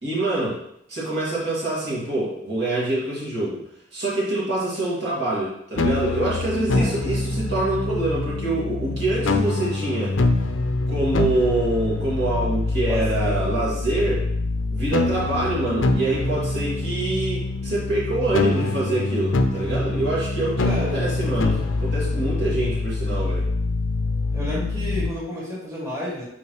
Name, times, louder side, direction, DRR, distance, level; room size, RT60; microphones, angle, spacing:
voice 1, 0.0-0.6 0.9-3.6 3.9-10.2 10.9-14.2 14.7-23.4, right 2 dB, 55° right, -7 dB, 2.2 m, -25 dB
sound 1, 5.8-25.1, left 2 dB, 75° left, 0.6 m, -25 dB
voice 2, 12.8-13.3 20.6-21.0 21.4-21.7 24.3-26.2, equal, 15° right, -8 dB, 2.2 m, -31 dB
7.1 x 4.8 x 3.1 m, 0.74 s
head